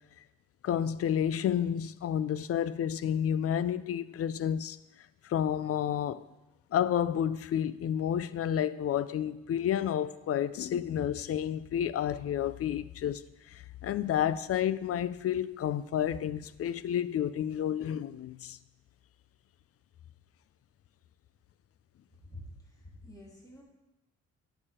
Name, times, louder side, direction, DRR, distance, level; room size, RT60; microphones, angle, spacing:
voice 1, 0.6-4.8 5.2-6.3 6.7-18.6, left 9 dB, 50° left, 0.5 m, -30 dB
voice 2, 22.3-23.6, left 1 dB, 10° left, 3.1 m, -48 dB
11.0 x 6.8 x 4.4 m
cardioid pair, 90°, 30 cm